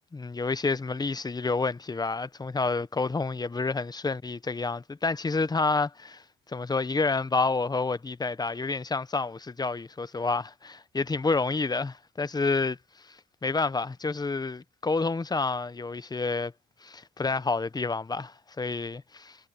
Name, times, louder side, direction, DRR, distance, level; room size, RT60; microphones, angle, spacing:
voice 1, 0.1-12.8 13.0-13.1 13.4-16.5 16.8-19.4, left 3 dB, 20° left, 0.9 m, -29 dB
cardioid pair, 90°, 20 cm